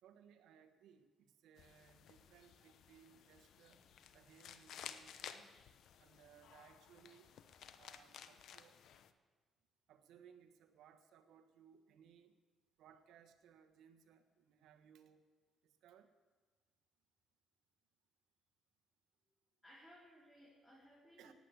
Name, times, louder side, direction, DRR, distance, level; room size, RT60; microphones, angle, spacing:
voice 1, 0.0-3.8 4.1-5.5 6.0-7.3 7.7-8.8 9.9-12.3 12.8-15.2 15.6-16.1 21.2-21.3, right 8 dB, 85° right, 8 dB, 1.3 m, -64 dB
sound 1, 1.6-9.1, left 8 dB, 75° left, 0.9 m, -56 dB
voice 2, 19.6-21.3, equal, 10° left, -6 dB, 4.3 m, -62 dB
18.0 x 8.6 x 8.3 m, 1.3 s
cardioid pair, 90°, 0 cm